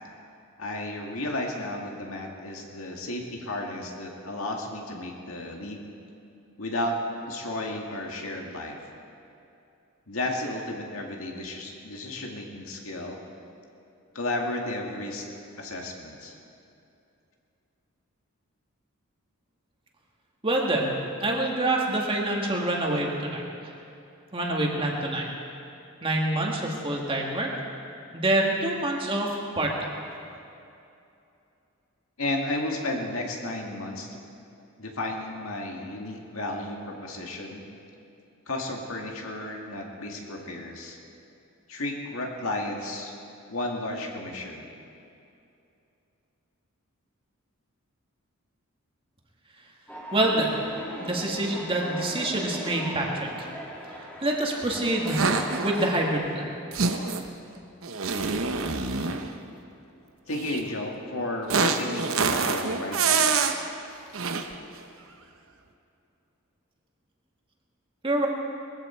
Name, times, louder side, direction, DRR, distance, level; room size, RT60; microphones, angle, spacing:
voice 1, 0.6-5.8 6.6-7.0 7.3-8.8 10.1-13.2 14.1-15.3 15.6-16.4 32.2-34.2 34.8-37.6 38.5-41.0 41.7-43.1 43.5-44.7 60.3-63.7, left 1 dB, 75° left, 1 dB, 2.1 m, -33 dB
voice 2, 20.4-20.9 21.2-23.4 24.3-25.3 26.0-27.5 28.1-29.3 29.6-30.1 50.1-50.6 51.0-53.5 54.2-55.3 55.6-56.4 68.0-68.3, right 1 dB, 25° right, -1 dB, 2.1 m, -26 dB
sound 1, 49.9-56.1, equal, 5° left, 1.9 m, -39 dB
sound 2, 55.1-55.9 56.7-57.3 57.8-59.3 60.3-60.6 61.5-63.6 64.1-64.5, right 4 dB, 65° right, 0.9 m, -26 dB
20.5 x 15.0 x 4.5 m, 2.7 s
head